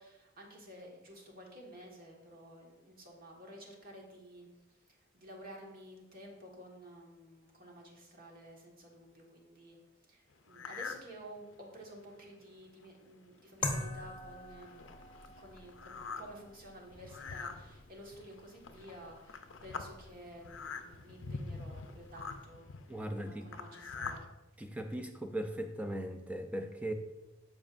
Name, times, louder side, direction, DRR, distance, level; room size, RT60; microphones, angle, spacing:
voice 1, 0.0-4.5 5.1-9.8 10.1-15.0 15.4-22.7 23.0-24.3, right 1 dB, 45° right, -1 dB, 1.5 m, -52 dB
sound 1, 10.5-11.1 11.5-11.6 12.2-12.3 12.6-12.9 13.6-13.7 14.0-24.3, left 4 dB, 65° left, 0.6 m, -45 dB
sound 2, 13.6-22.5, left 3 dB, 25° left, 0.8 m, -45 dB
voice 2, 22.9-23.5 24.6-26.9, right 1 dB, 5° right, 6 dB, 0.5 m, -38 dB
12.5 x 5.3 x 2.5 m, 1.0 s
head